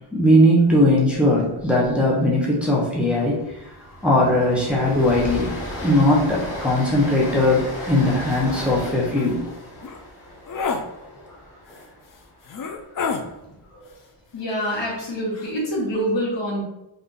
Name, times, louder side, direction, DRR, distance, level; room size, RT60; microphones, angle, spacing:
voice 1, 0.1-3.4 4.0-5.5 5.8-9.5, left 1 dB, ahead, -4 dB, 0.8 m, -19 dB
Train, 1.6-1.9 2.1-2.3 2.7-12.8, left 1 dB, 85° left, 1.1 m, -35 dB
sound 1, 8.3-8.4 8.8-8.9 9.2-9.4 9.8-10.0 10.5-10.8 11.7-11.8 12.4-13.2 14.6-15.0 15.3-15.5, left 5 dB, 45° left, 0.4 m, -28 dB
voice 2, 14.3-16.6, equal, 60° left, -3 dB, 1.1 m, -26 dB
2.5 x 2.4 x 3.7 m, 0.88 s
cardioid pair, 65°, 49 cm